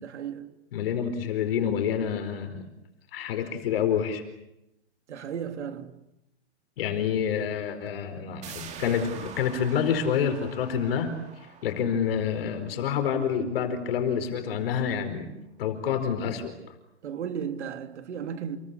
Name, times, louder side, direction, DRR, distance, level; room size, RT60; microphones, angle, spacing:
voice 1, 0.0-0.5 5.1-6.0 17.0-18.6, right 8 dB, 75° right, 3.3 m, -35 dB
voice 2, 0.7-2.7 3.1-4.2 6.8-11.1 11.6-15.3 15.6-16.5, left 8 dB, 55° left, 4.6 m, -27 dB
sound 1, 8.4-13.9 14.2-14.3, right 7 dB, 20° right, 2.6 m, -46 dB
28.5 x 22.0 x 8.3 m
hypercardioid pair, 155°, 35 cm